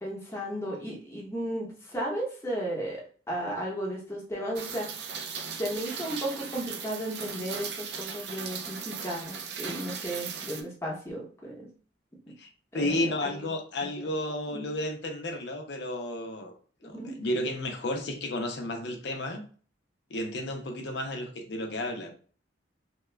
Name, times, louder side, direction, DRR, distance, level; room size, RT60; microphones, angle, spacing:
voice 1, 0.0-3.0 3.3-5.2 5.6-11.7 12.7-13.5 14.5-14.7 16.8-17.2, right 1 dB, 15° left, 0.9 m, -34 dB
Rain, 4.6-10.6, right 6 dB, 60° right, 0.4 m, -38 dB
voice 2, 12.7-16.5 16.8-19.4 20.1-22.1, left 1 dB, 65° left, 0.5 m, -32 dB
2.8 x 2.2 x 3.3 m
head